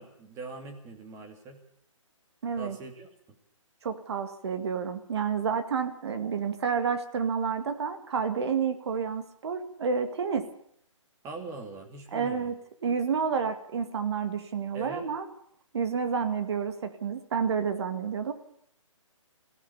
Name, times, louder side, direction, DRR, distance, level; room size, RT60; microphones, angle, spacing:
voice 1, 0.0-1.6 2.6-3.4 11.2-12.5 14.7-15.0, right 3 dB, 20° right, 4 dB, 2.8 m, -42 dB
voice 2, 2.4-2.8 3.8-10.5 12.1-15.3 15.7-18.3, right 6 dB, 55° right, 8 dB, 2.1 m, -30 dB
23.5 x 16.0 x 7.0 m, 0.69 s
figure-of-eight pair, 145°, 17 cm